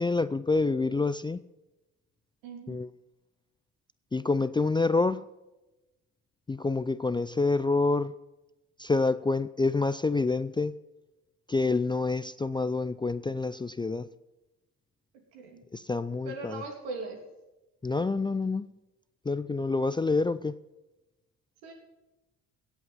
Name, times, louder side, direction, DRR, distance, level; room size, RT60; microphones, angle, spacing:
voice 1, 0.0-1.4 2.7-2.9 4.1-5.3 6.5-8.1 8.8-10.7 11.5-14.1 15.7-16.6 17.8-18.7 19.3-20.6, left 3 dB, 10° left, 0.4 m, -27 dB
voice 2, 2.4-2.8 15.3-15.6 16.2-17.2 21.6-21.7, right 3 dB, 80° right, 3.1 m, -39 dB
16.5 x 8.2 x 5.6 m
hypercardioid pair, 55°, 40 cm